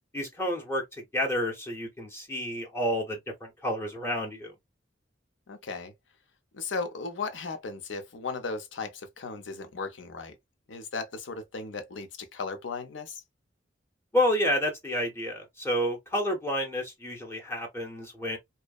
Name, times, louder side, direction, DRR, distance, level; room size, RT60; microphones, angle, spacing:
voice 1, 0.1-0.8 1.1-4.5 14.1-18.4, equal, 15° left, 0.6 m, -29 dB
voice 2, 5.5-5.9 6.5-10.4 10.7-13.2, left 4 dB, 85° left, 0.6 m, -36 dB
2.7 x 2.0 x 2.3 m
head